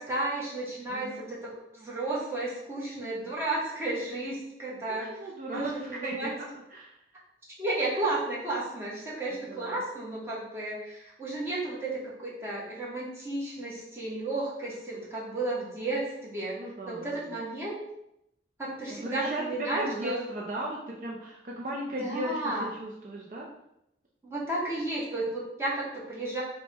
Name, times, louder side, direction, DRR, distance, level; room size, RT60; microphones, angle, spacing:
voice 1, 0.0-5.1 5.5-6.3 7.6-17.8 18.6-20.2 22.0-22.7 24.2-26.4, right 2 dB, 15° right, -7 dB, 1.1 m, -33 dB
voice 2, 0.9-1.3 4.9-7.0 9.3-9.8 14.6-15.1 16.6-17.4 18.9-22.5 22.8-23.5, right 1 dB, 45° right, -3 dB, 0.5 m, -37 dB
5.4 x 2.2 x 3.3 m, 0.82 s
head